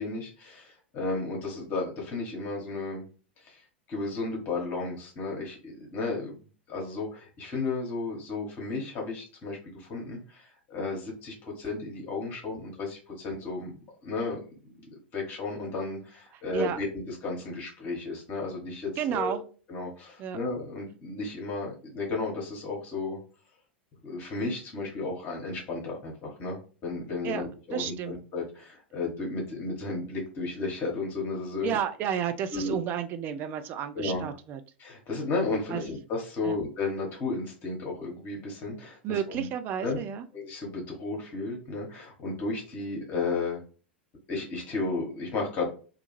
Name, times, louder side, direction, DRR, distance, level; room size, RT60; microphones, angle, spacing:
voice 1, 0.0-3.0 3.4-3.6 3.9-6.3 6.7-13.7 14.0-14.7 15.1-19.4 19.7-23.2 24.0-31.8 32.5-32.8 33.9-34.3 34.8-39.5 39.8-40.0 40.3-43.6 44.3-45.7, left 3 dB, 35° left, -1 dB, 0.9 m, -33 dB
voice 2, 19.0-19.4 20.2-20.4 27.2-27.4 27.7-28.1 31.6-34.6 35.7-35.8 36.4-36.6 39.0-40.2, right 8 dB, 35° right, 9 dB, 0.3 m, -31 dB
2.4 x 2.2 x 3.0 m, 0.37 s
figure-of-eight pair, 90°, 6 cm